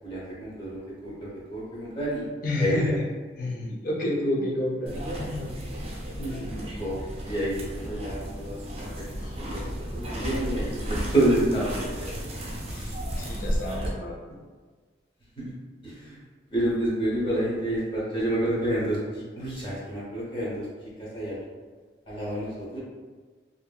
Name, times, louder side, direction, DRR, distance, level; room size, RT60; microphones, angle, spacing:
voice 1, 0.0-2.3 2.6-2.9 6.8-7.0 7.2-8.6 9.0-9.1 9.4-9.7 10.0-12.2 15.4-15.5 15.8-16.2 16.5-20.7 21.0-21.4 22.1-22.8, right 1 dB, 25° left, -7 dB, 0.8 m, -28 dB
voice 2, 2.4-3.0 3.4-5.5 6.2-6.7 9.2-9.4 12.7-14.2, left 1 dB, 45° left, -3 dB, 0.5 m, -30 dB
sound 1, 4.9-13.9, equal, 35° right, 0.5 m, -33 dB
2.6 x 2.6 x 2.2 m, 1.4 s
head